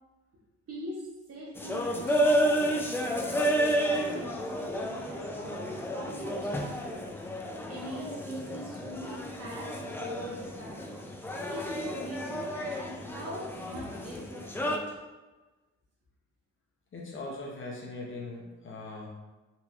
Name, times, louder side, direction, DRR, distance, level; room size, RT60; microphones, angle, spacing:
voice 1, 0.7-1.0 1.3-3.6 3.8-7.0 7.4-10.8 11.5-14.9, equal, 50° right, -4 dB, 1.2 m, -42 dB
sound 1, 1.6-14.8, equal, 10° left, 0.3 m, -31 dB
voice 2, 16.9-19.1, left 2 dB, 40° left, -3 dB, 0.9 m, -40 dB
4.1 x 2.7 x 2.3 m, 1.2 s
cardioid pair, 90°, 30 cm